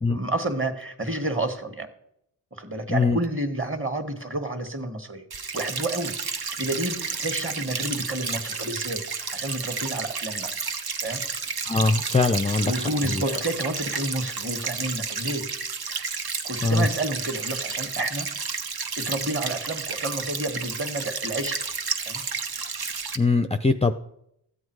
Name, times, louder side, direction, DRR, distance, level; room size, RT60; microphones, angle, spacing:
voice 1, 0.1-1.9 2.5-5.2 5.5-6.1 6.6-10.5 11.0-11.2 12.6-15.5 15.9-16.0 16.4-18.3 19.0-21.6 22.1-22.2, right 1 dB, 25° right, 7 dB, 1.9 m, -30 dB
voice 2, 2.9-3.2 11.6-13.4 16.6-16.9 23.2-23.9, left 3 dB, 15° left, 10 dB, 0.6 m, -22 dB
sound 1, 5.3-23.2, right 5 dB, 50° right, 1.1 m, -31 dB
13.5 x 7.9 x 4.8 m, 0.77 s
cardioid pair, 45°, 48 cm